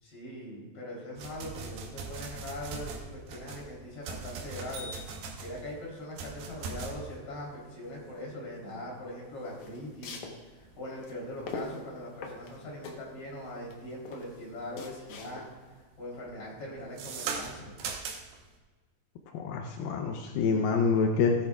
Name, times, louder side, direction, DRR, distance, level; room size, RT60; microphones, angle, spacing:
voice 1, 0.0-4.9 5.4-10.2 10.5-15.4 16.0-17.7, left 1 dB, 30° left, -4 dB, 3.8 m, -41 dB
sound 1, 1.2-14.5 14.9-15.3 15.6-18.5, right 4 dB, 75° right, 2.8 m, -41 dB
sound 2, 9.4-15.7, left 3 dB, 65° left, 2.0 m, -43 dB
voice 2, 19.3-21.4, left 5 dB, 80° left, 3 dB, 2.5 m, -26 dB
16.5 x 10.5 x 2.4 m, 1.4 s
omnidirectional pair, 4.3 m